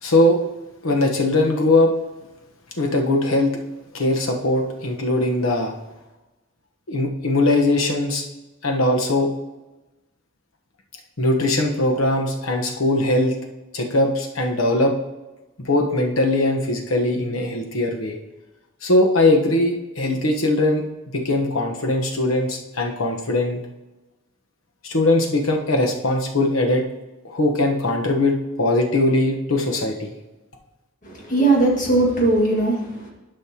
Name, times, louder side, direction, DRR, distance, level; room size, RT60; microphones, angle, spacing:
voice 1, 0.0-0.4 0.8-1.9 2.8-3.5 3.9-5.7 6.9-8.2 8.6-9.3 11.2-13.3 13.7-14.9 15.6-18.2 18.8-20.8 21.1-23.6 24.8-26.8 27.2-30.1, left 2 dB, 80° left, 2 dB, 1.1 m, -20 dB
voice 2, 31.0-33.1, right 2 dB, 40° left, -2 dB, 1.9 m, -19 dB
11.5 x 5.6 x 2.9 m, 1.1 s
head